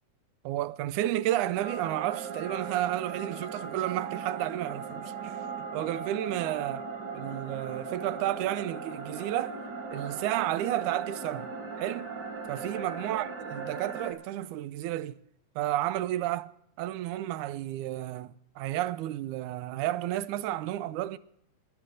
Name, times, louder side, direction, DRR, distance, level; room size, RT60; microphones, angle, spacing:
voice 1, 0.4-6.9 7.1-9.6 9.9-11.5 11.8-12.1 12.5-15.2 15.6-21.2, right 13 dB, 80° right, 2.1 m, -32 dB
sound 1, 1.6-14.1, right 5 dB, 40° right, 1.8 m, -38 dB
21.0 x 11.0 x 3.8 m
omnidirectional pair, 3.5 m